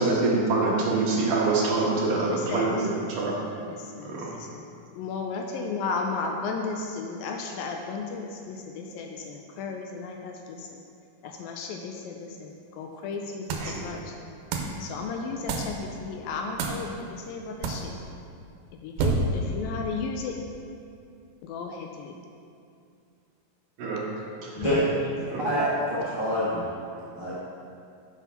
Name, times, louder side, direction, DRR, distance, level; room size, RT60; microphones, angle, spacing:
voice 1, 0.0-3.4 4.0-4.3 13.6-13.8 23.8-24.0 25.3-25.4, right 3 dB, 65° right, -4 dB, 2.8 m, -25 dB
voice 2, 2.3-2.7 3.6-4.7 5.0-10.7 11.2-14.1 14.8-17.9 18.8-20.3 21.4-22.1, left 4 dB, 80° left, 2 dB, 2.2 m, -34 dB
sound 1, 13.5-13.8 14.5-14.8 15.5-15.8 16.6-16.9 17.6-17.9 19.0-19.5, right 3 dB, 85° right, 2.7 m, -27 dB
voice 3, 25.1-26.7 27.1-27.5, equal, 35° right, -11 dB, 0.7 m, -27 dB
8.2 x 5.9 x 5.6 m, 2.4 s
omnidirectional pair, 4.4 m